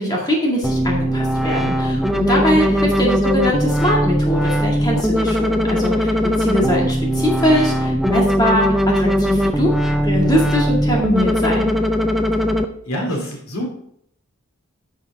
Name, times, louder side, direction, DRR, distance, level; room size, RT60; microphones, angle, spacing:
voice 1, 0.0-11.7, equal, 20° left, -2 dB, 2.1 m, -21 dB
sound 1, 0.6-12.6, equal, ahead, 0.4 m, -19 dB
voice 2, 2.5-3.0 12.8-13.7, equal, 75° left, 1 dB, 2.5 m, -27 dB
9.8 x 6.4 x 3.6 m, 0.69 s
head